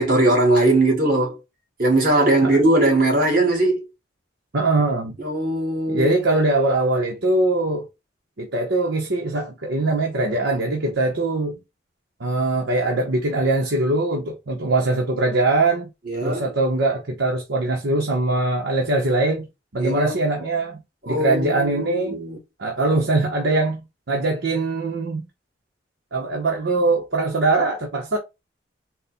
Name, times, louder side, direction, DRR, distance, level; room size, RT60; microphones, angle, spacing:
voice 1, 0.0-1.4 1.8-3.8 5.2-6.4 16.1-16.5 19.8-20.2 21.0-22.4, right 2 dB, 50° right, 1.9 m, -20 dB
voice 2, 4.5-5.1 5.9-7.9 8.4-11.6 12.2-15.9 16.2-19.5 19.7-20.8 21.1-22.2 22.6-25.3 26.1-28.2, right 2 dB, 85° right, 0.9 m, -22 dB
4.1 x 2.2 x 4.2 m
head